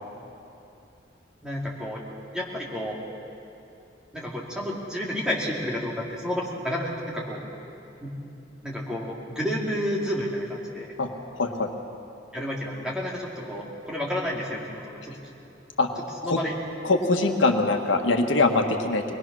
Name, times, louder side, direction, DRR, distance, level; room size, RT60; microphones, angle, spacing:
voice 1, 1.4-2.0 2.3-3.0 4.1-7.4 8.0-8.1 8.6-10.9 12.3-15.2 16.2-16.5, equal, 5° right, -5 dB, 2.8 m, -30 dB
voice 2, 11.4-11.7 15.8-15.9 16.2-16.4 16.8-19.0, left 3 dB, 90° left, 4 dB, 1.5 m, -22 dB
23.0 x 20.0 x 6.3 m, 2.7 s
head